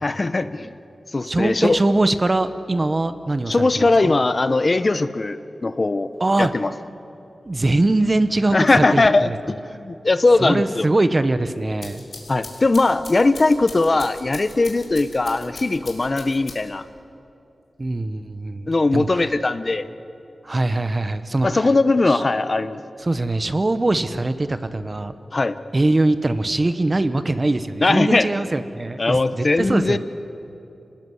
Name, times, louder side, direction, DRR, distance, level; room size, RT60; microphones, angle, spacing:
voice 1, 0.0-0.7 1.1-1.8 3.5-6.1 6.4-6.7 8.5-10.9 12.3-16.8 18.7-19.9 21.4-22.8 25.3-25.6 27.8-28.3 29.0-30.0, left 3 dB, 45° left, 12 dB, 0.9 m, -19 dB
voice 2, 1.3-4.2 6.2-6.5 7.4-9.4 10.4-12.0 17.8-19.3 20.4-21.7 22.1-22.2 23.0-25.1 25.7-30.0, right 2 dB, 35° right, 11 dB, 1.1 m, -22 dB
sound 1, 11.6-16.9, left 3 dB, 75° left, 3.7 m, -41 dB
26.5 x 19.5 x 8.0 m, 2.8 s
wide cardioid pair, 65°, 0 cm